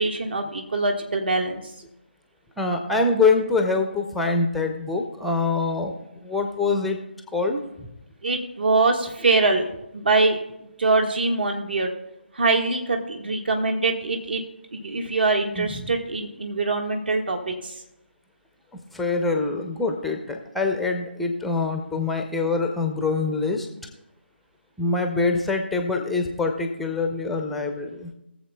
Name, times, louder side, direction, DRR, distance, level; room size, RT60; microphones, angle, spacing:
voice 1, 0.0-1.6 8.2-9.7 9.9-10.4 10.8-11.9 12.3-14.4 14.7-17.8, right 3 dB, 60° right, 3 dB, 1.5 m, -23 dB
voice 2, 2.6-7.0 7.3-7.6 15.6-15.9 18.9-23.7 24.8-28.1, left 3 dB, ahead, 4 dB, 0.5 m, -24 dB
21.0 x 7.2 x 2.2 m, 0.89 s
figure-of-eight pair, 155°, 6 cm